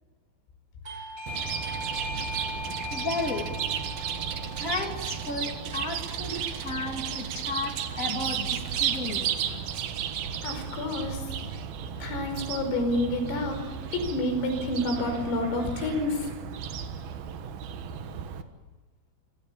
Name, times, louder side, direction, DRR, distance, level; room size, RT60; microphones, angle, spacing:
Doorbell, 0.8-7.3, left 2 dB, 15° right, 5.7 m, -40 dB
Chirp tweet, 1.3-18.4, right 8 dB, 65° right, 2.5 m, -34 dB
voice 1, 2.9-3.5 4.6-9.3, left 3 dB, 25° left, 3 dB, 2.1 m, -33 dB
voice 2, 10.4-11.2 12.0-13.6 13.9-16.3, left 1 dB, 80° left, 6 dB, 7.9 m, -29 dB
26.5 x 25.5 x 7.2 m, 1.3 s
omnidirectional pair, 6.0 m